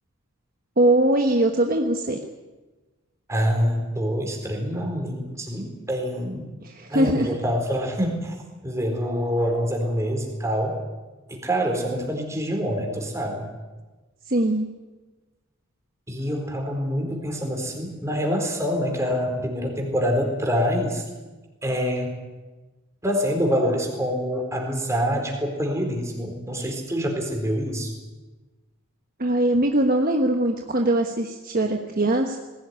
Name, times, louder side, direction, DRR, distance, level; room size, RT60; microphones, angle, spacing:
voice 1, 0.8-2.2 6.6-7.3 14.3-14.7 29.2-32.4, right 1 dB, 40° right, 3 dB, 1.3 m, -21 dB
voice 2, 3.3-6.4 6.9-8.4 8.6-10.8 11.3-13.5 16.1-21.0 21.6-22.1 23.0-27.9, equal, 15° right, 2 dB, 4.2 m, -26 dB
20.0 x 16.5 x 9.6 m, 1.2 s
head